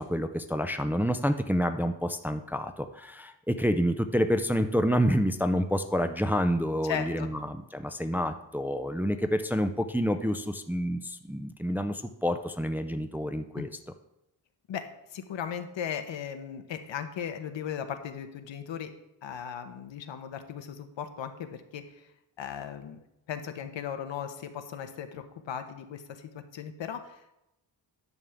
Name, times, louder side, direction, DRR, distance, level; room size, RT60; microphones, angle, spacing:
voice 1, 0.0-13.7, equal, 5° right, 8 dB, 0.4 m, -28 dB
voice 2, 6.8-7.4 13.5-13.7 14.7-18.9 19.2-21.9 22.4-23.0 23.3-27.4, left 8 dB, 90° left, 8 dB, 1.0 m, -37 dB
10.5 x 3.7 x 7.0 m, 0.88 s
wide cardioid pair, 130°, 44 cm